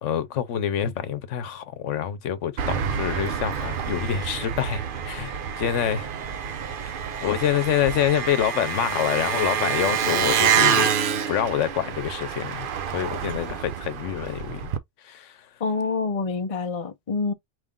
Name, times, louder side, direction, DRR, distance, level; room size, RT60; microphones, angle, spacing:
voice 1, 0.0-6.1 6.7-6.9 7.2-10.9 11.3-12.7 12.9-14.7 15.0-15.4, left 9 dB, 85° left, 1.1 m, -26 dB
Engine, 2.6-14.8, right 8 dB, 55° right, 0.7 m, -27 dB
voice 2, 15.6-17.3, left 4 dB, 35° left, 0.7 m, -26 dB
5.0 x 2.5 x 3.6 m
omnidirectional pair, 1.2 m